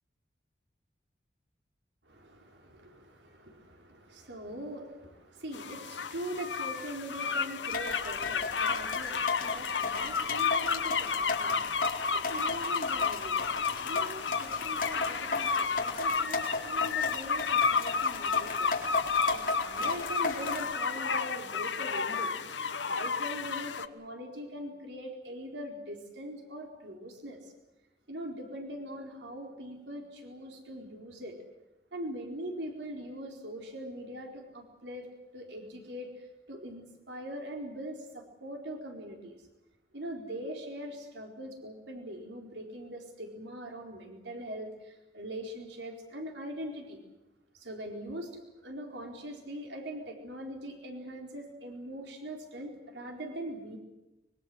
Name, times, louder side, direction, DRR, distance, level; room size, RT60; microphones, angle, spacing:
voice 1, 2.0-18.7 19.3-22.3 22.8-27.5 28.1-31.4 31.9-35.1 35.3-39.5 39.9-47.0 47.5-48.3 48.6-53.8, right 1 dB, 85° right, 2 dB, 4.4 m, -42 dB
sound 1, 5.5-23.9, left 5 dB, 90° left, 1.2 m, -31 dB
sound 2, 7.7-20.7, left 3 dB, 50° left, 4.2 m, -36 dB
25.0 x 23.0 x 7.9 m, 0.97 s
head